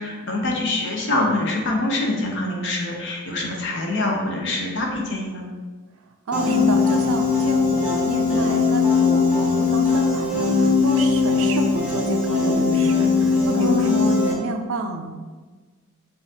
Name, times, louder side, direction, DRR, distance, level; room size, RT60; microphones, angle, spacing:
voice 1, 0.0-5.4 13.5-14.0, left 2 dB, 55° left, 0 dB, 0.7 m, -25 dB
Piano, 6.3-14.3, left 4 dB, 5° right, 0.6 m, -20 dB
voice 2, 6.3-15.1, right 2 dB, 65° right, 5 dB, 0.4 m, -29 dB
5.6 x 2.5 x 2.8 m, 1.3 s
head